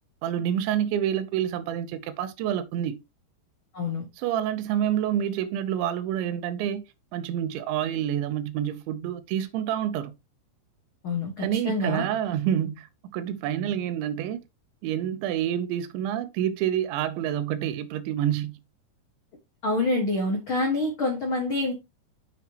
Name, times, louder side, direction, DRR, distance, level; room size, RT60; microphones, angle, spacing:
voice 1, 0.2-3.0 4.2-6.8 7.1-10.1 11.4-14.4 14.8-18.5, right 10 dB, 85° right, 3.2 m, -28 dB
voice 2, 3.7-4.1 11.0-12.0 19.6-21.7, left 2 dB, 80° left, 1.1 m, -26 dB
7.8 x 6.9 x 2.9 m
omnidirectional pair, 5.1 m